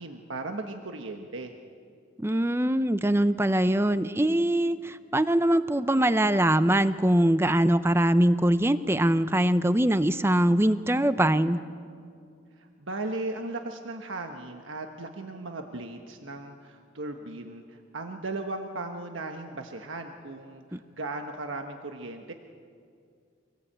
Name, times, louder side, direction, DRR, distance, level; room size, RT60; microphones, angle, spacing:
voice 1, 0.0-1.5 12.6-22.3, right 2 dB, 85° right, 4 dB, 1.3 m, -37 dB
voice 2, 2.2-11.6 20.7-20.8, right 1 dB, 10° right, 13 dB, 0.6 m, -23 dB
25.0 x 19.0 x 8.8 m, 2.3 s
head